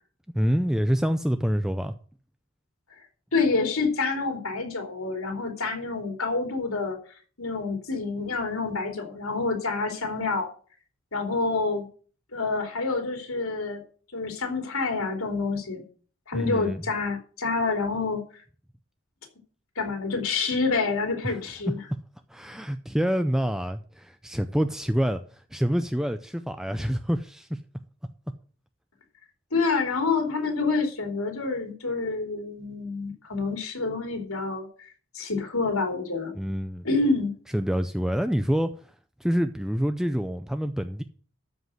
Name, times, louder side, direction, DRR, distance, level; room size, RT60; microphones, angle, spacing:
voice 1, 0.3-1.9 16.3-16.8 21.2-21.7 22.3-27.6 36.3-36.9 37.5-38.7 39.2-41.0, equal, ahead, 0.4 m, -27 dB
voice 2, 3.3-7.0 7.4-10.5 11.1-11.9 12.3-13.8 14.1-15.8 16.3-18.2 19.7-21.8 29.5-34.7 35.1-36.3 36.8-37.3, left 3 dB, 90° left, 3.2 m, -27 dB
13.0 x 5.2 x 7.7 m
head